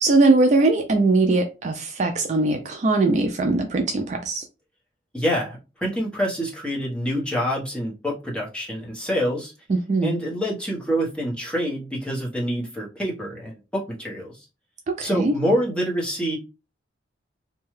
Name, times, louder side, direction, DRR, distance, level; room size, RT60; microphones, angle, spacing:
voice 1, 0.0-4.4 9.7-10.2 14.9-15.3, right 3 dB, 40° right, 0.3 m, -20 dB
voice 2, 5.1-9.5 10.0-14.5 15.0-16.4, equal, 5° left, 0.9 m, -26 dB
2.7 x 2.2 x 3.1 m
head